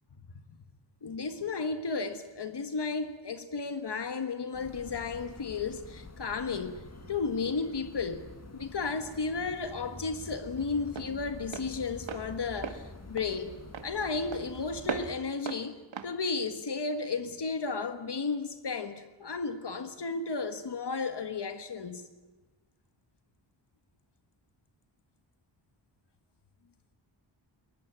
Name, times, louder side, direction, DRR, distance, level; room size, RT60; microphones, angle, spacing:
voice 1, 1.0-8.3 8.5-13.6 13.8-15.8 16.0-22.0, left 4 dB, 60° left, 1.6 m, -33 dB
sound 1, 4.5-15.1, left 2 dB, 35° left, 2.3 m, -47 dB
Walk footsteps, 8.7-17.4, right 5 dB, 75° right, 1.8 m, -41 dB
22.0 x 20.0 x 8.6 m
wide cardioid pair, 135°, 46 cm